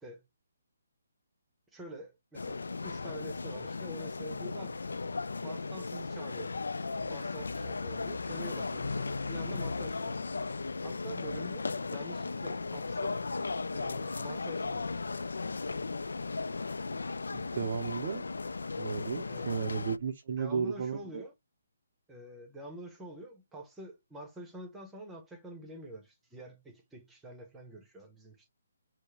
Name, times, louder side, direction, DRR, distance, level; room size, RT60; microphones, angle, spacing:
voice 1, 1.7-5.1 5.4-6.6 6.9-10.4 10.8-13.1 13.7-14.9 19.3-19.6 20.4-21.3 22.1-28.5, right 1 dB, 5° right, 0.8 m, -47 dB
sound 1, 2.3-20.0, left 3 dB, 90° left, 0.3 m, -36 dB
voice 2, 17.3-18.2 18.8-21.2, right 6 dB, 45° right, 0.5 m, -34 dB
4.5 x 2.0 x 3.2 m
hypercardioid pair, 160°, 0 cm